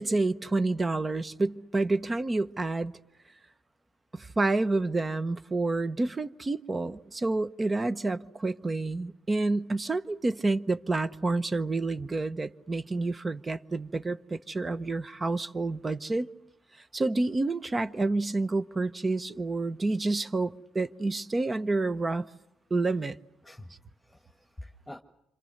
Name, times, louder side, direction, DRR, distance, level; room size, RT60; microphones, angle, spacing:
voice 1, 0.0-2.9 4.1-16.3 16.9-22.3 22.7-23.2, right 2 dB, 25° right, 0.9 m, -29 dB
voice 2, 23.4-25.0, left 1 dB, 5° left, 1.6 m, -47 dB
27.5 x 26.0 x 6.6 m
cardioid pair, 90°, 0 cm